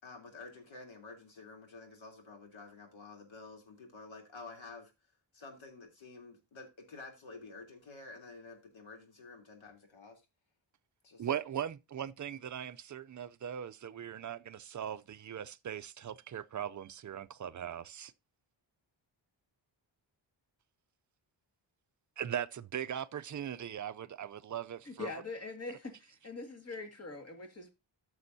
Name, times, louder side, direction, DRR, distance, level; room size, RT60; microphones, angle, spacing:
voice 1, 0.0-4.9 5.3-10.2 11.0-11.3, left 3 dB, 75° left, 3.3 m, -50 dB
voice 2, 11.2-18.1 22.2-25.1, right 9 dB, 40° right, 0.4 m, -39 dB
voice 3, 24.9-27.7, left 3 dB, 30° left, 2.0 m, -43 dB
14.0 x 6.3 x 2.7 m
wide cardioid pair, 165°, 47 cm